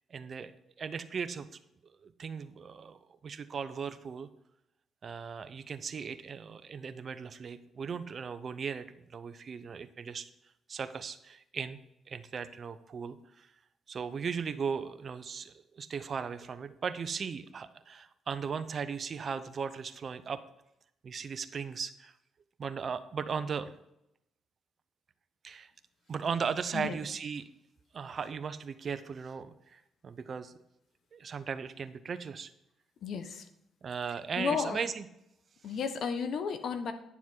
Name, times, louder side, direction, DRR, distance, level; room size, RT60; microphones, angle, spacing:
voice 1, 0.1-0.5 0.8-1.5 2.0-4.3 5.0-10.3 10.7-11.8 12.1-13.5 13.9-20.4 21.0-22.1 22.6-23.7 25.4-25.7 26.1-27.5 27.9-30.5 31.1-32.5 33.8-35.0, right 6 dB, 45° right, 11 dB, 0.7 m, -37 dB
voice 2, 33.0-33.5 34.3-34.8 35.6-36.9, left 6 dB, 65° left, 9 dB, 1.1 m, -33 dB
9.9 x 7.2 x 4.6 m, 0.83 s
cardioid pair, 90°, 0 cm